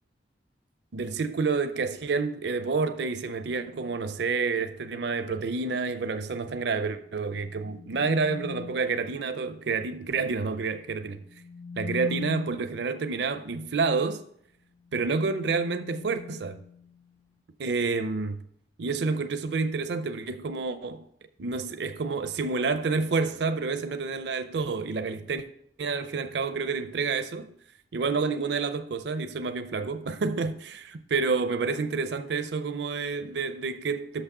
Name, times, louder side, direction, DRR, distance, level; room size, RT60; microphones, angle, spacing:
voice 1, 0.9-11.2 11.8-14.2 14.9-16.6 17.6-18.4 18.8-21.1 21.4-25.4 25.8-27.5 27.9-34.2, right 4 dB, 70° right, 0.5 m, -29 dB
sound 1, 7.2-9.0 11.1-12.8 14.8-17.2, left 6 dB, 15° left, 0.3 m, -41 dB
6.3 x 6.0 x 6.6 m
head